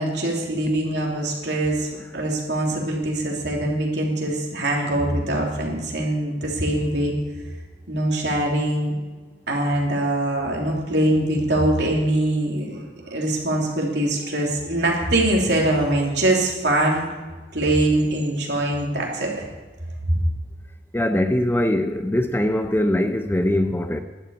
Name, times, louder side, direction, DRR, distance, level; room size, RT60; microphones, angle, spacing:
voice 1, 0.0-7.1 7.9-8.9 9.5-17.1 17.5-19.5 20.0-20.2, right 1 dB, 75° right, -1 dB, 3.1 m, -23 dB
voice 2, 20.9-24.0, left 1 dB, 10° left, 7 dB, 0.6 m, -22 dB
12.0 x 8.1 x 8.3 m, 1.3 s
head